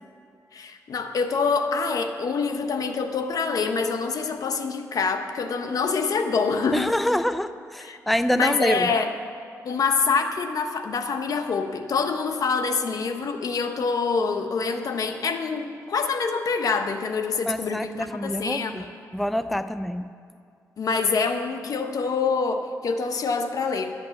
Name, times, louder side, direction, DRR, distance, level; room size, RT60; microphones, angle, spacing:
voice 1, 0.5-6.9 7.8-8.0 8.3-9.1 9.6-18.9 20.8-23.9, left 5 dB, 65° left, 6 dB, 1.0 m, -26 dB
voice 2, 6.7-8.9 17.5-18.8 19.1-20.0, left 1 dB, ahead, 12 dB, 0.4 m, -26 dB
12.5 x 8.7 x 7.2 m, 2.3 s
cardioid pair, 70°, 7 cm